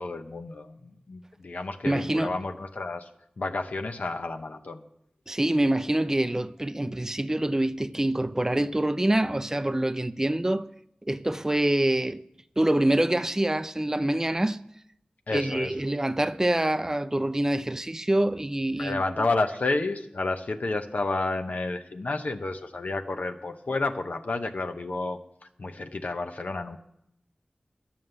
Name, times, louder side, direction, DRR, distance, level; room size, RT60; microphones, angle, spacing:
voice 1, 0.0-3.1 3.4-4.8 15.3-15.7 18.8-25.2 25.6-26.8, left 3 dB, 80° left, 0.8 m, -30 dB
voice 2, 1.8-2.3 5.3-10.7 11.1-12.2 12.6-14.6 15.3-19.1, right 1 dB, 20° right, 0.4 m, -25 dB
11.0 x 7.3 x 7.9 m
wide cardioid pair, 60°, 3 cm